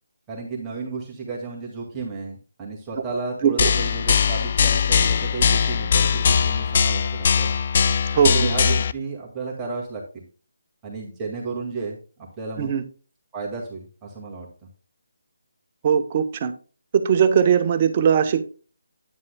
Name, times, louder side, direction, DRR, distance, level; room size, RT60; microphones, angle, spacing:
voice 1, 0.3-7.6 8.3-10.2 10.8-12.7 13.3-14.5, right 4 dB, 15° right, -3 dB, 2.0 m, -33 dB
sound 1, 3.6-8.9, left 6 dB, 45° left, 0.4 m, -20 dB
voice 2, 8.1-8.5 12.6-12.8 15.8-16.5 17.0-18.4, right 7 dB, 35° right, 9 dB, 0.9 m, -19 dB
9.7 x 9.6 x 2.2 m, 0.36 s
figure-of-eight pair, 155°, 0 cm